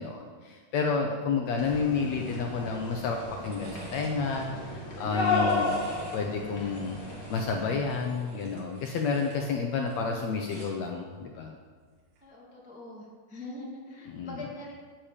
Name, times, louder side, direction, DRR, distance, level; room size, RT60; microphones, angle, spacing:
voice 1, 0.0-5.7 6.1-7.0 7.3-11.5 14.1-14.4, left 5 dB, 75° left, 2 dB, 1.7 m, -30 dB
sound 1, 1.6-8.1, left 3 dB, 30° left, 1.8 m, -33 dB
sound 2, 2.2-2.4 2.8-4.5 5.1-6.2 6.6-9.4 9.7-10.9 12.0-12.2, right 2 dB, 85° right, 4.4 m, -49 dB
voice 2, 12.2-14.7, left 2 dB, 5° right, -4 dB, 0.8 m, -43 dB
10.0 x 8.7 x 5.0 m, 1.6 s
omnidirectional pair, 3.8 m